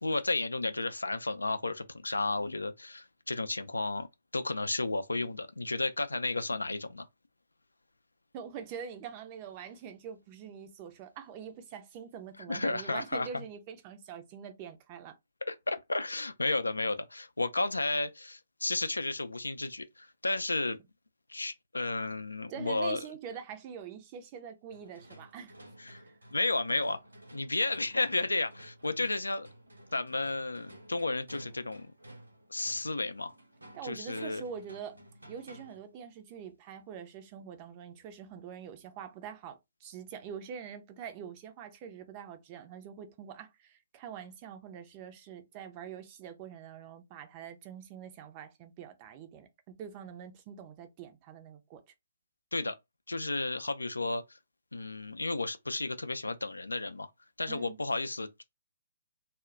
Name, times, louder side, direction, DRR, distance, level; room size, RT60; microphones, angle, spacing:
voice 1, 0.0-4.1 4.3-7.1 12.5-13.4 15.5-20.8 21.3-23.0 25.8-26.0 26.3-27.0 27.3-29.5 29.9-31.9 32.5-33.3 33.8-34.4 52.5-52.8 53.1-54.4 54.7-57.1 57.4-58.4, left 2 dB, 75° left, 0.4 m, -32 dB
voice 2, 8.3-15.2 22.5-25.5 25.9-26.2 33.7-35.0 35.3-51.8 57.5-57.8, right 8 dB, 30° right, 0.5 m, -44 dB
sound 1, 24.7-36.0, right 1 dB, 75° right, 0.8 m, -54 dB
2.2 x 2.1 x 3.7 m
figure-of-eight pair, 130°, 0 cm